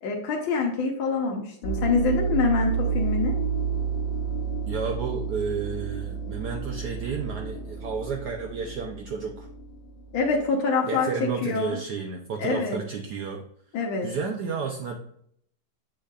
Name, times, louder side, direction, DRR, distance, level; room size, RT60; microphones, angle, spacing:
voice 1, 0.0-3.3 10.1-11.8 12.4-12.8 13.7-14.1, left 4 dB, 85° left, 0 dB, 1.7 m, -25 dB
sound 1, 1.6-10.3, right 6 dB, 65° left, 1.4 m, -30 dB
voice 2, 4.7-9.5 10.8-13.4 14.0-15.0, right 5 dB, 65° right, 2 dB, 1.2 m, -31 dB
8.0 x 6.3 x 2.4 m, 0.67 s
omnidirectional pair, 2.1 m